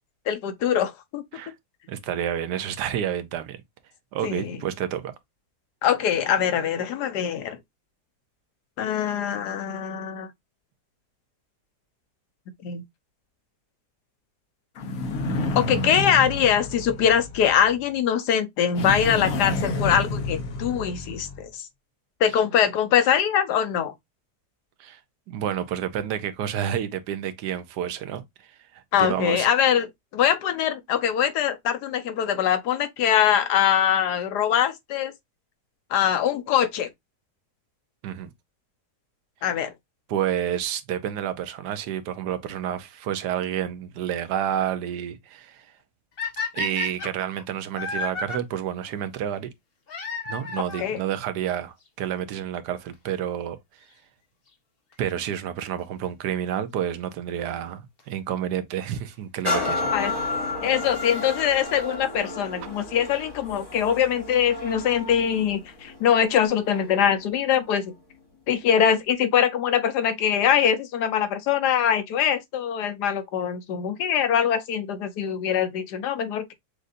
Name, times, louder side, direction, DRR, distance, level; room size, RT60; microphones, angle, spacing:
voice 1, 0.3-1.2 4.2-4.6 5.8-7.6 8.8-10.3 12.6-12.8 15.5-21.7 22.2-23.9 28.9-35.1 35.9-36.9 39.4-39.7 50.8-51.0 59.9-60.1 60.6-67.9 68.5-76.5, left 9 dB, 80° left, 1.3 m, -23 dB
voice 2, 1.9-3.6 4.1-5.1 24.8-25.0 25.3-28.2 28.7-29.5 38.0-38.3 40.1-45.7 46.5-49.5 50.3-53.6 55.0-59.9, right 10 dB, 80° right, 1.2 m, -29 dB
sound 1, 14.7-17.8 18.7-21.5, left 2 dB, 60° left, 1.1 m, -29 dB
sound 2, 46.2-48.4 49.9-50.9 51.9-52.0 52.6-52.7 52.9-53.0 54.9-55.2 58.0-58.1 59.1-59.2 60.7-60.8 61.0-61.1 61.4-61.5 61.7-61.8 61.9-62.0 62.2-62.3 62.5-62.6, left 4 dB, 45° left, 1.0 m, -32 dB
sound 3, 59.5-67.1 67.6-67.7, left 3 dB, 15° left, 1.1 m, -32 dB
6.4 x 2.6 x 2.5 m
omnidirectional pair, 1.8 m